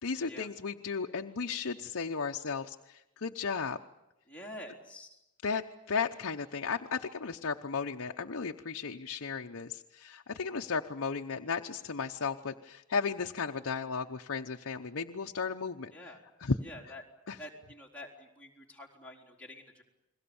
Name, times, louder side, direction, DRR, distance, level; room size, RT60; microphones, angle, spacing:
voice 1, 0.0-3.8 5.4-16.1 16.4-16.6 17.3-17.4, left 5 dB, 60° left, 3 dB, 0.9 m, -35 dB
voice 2, 4.3-5.2 15.9-16.2 16.6-17.0 17.4-19.8, left 1 dB, 5° left, -2 dB, 4.1 m, -47 dB
29.5 x 21.5 x 7.1 m, 0.90 s
head